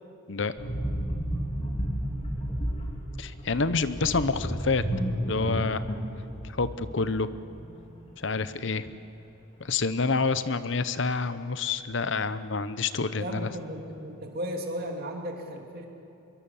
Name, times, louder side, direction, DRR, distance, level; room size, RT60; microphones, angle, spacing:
sound 1, 0.6-8.0 8.2-8.5, equal, 30° left, 3.0 m, -32 dB
voice 1, 3.2-4.8 5.3-5.8 6.4-7.3 8.2-8.8 9.6-13.5, left 4 dB, 60° left, 13 dB, 0.8 m, -28 dB
voice 2, 13.1-15.9, equal, 45° right, 2 dB, 2.9 m, -35 dB
25.0 x 23.0 x 7.2 m, 2.9 s
head